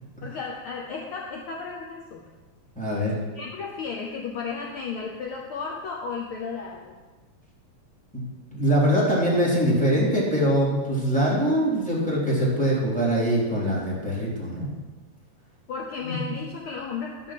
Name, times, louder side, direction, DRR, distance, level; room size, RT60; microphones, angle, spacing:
voice 1, 0.2-2.3 3.3-7.0 15.7-17.3, left 5 dB, 70° left, -1 dB, 1.2 m, -34 dB
voice 2, 2.7-3.2 8.1-8.2 8.5-14.7 16.0-16.3, equal, ahead, -7 dB, 2.9 m, -23 dB
11.0 x 5.4 x 7.4 m, 1.3 s
omnidirectional pair, 3.5 m